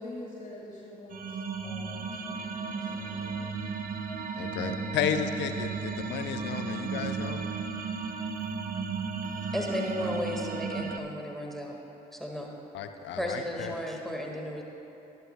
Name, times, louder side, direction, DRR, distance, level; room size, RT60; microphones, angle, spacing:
voice 1, 0.0-3.5, left 2 dB, 45° left, -4 dB, 1.9 m, -45 dB
sound 1, 1.1-11.0, right 5 dB, 45° right, 0.8 m, -34 dB
voice 2, 4.4-7.4 12.7-13.7, left 8 dB, 70° left, 7 dB, 0.7 m, -33 dB
voice 3, 9.4-11.8 12.1-12.5 13.2-14.6, equal, ahead, -1 dB, 1.7 m, -34 dB
18.5 x 11.0 x 2.2 m, 3.0 s
hypercardioid pair, 55°, 19 cm